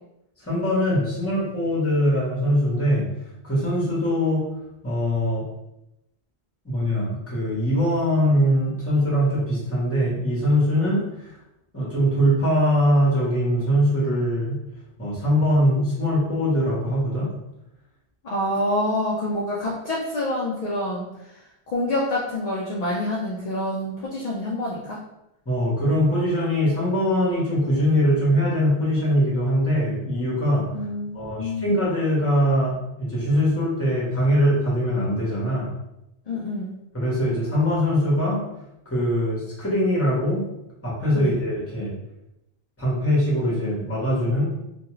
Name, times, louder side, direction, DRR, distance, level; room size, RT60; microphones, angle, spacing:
voice 1, 0.4-3.1 3.4-4.5 4.8-5.4 6.6-11.3 11.7-14.6 15.0-17.3 25.4-30.6 31.1-35.7 36.9-38.4 38.9-40.4 40.8-41.9 42.8-44.4, equal, 15° left, -7 dB, 0.9 m, -22 dB
voice 2, 18.2-21.1 21.7-25.0 30.7-31.8 36.3-36.7 41.1-41.3, left 1 dB, 50° left, -5 dB, 0.5 m, -27 dB
2.3 x 2.3 x 3.0 m, 0.88 s
omnidirectional pair, 1.1 m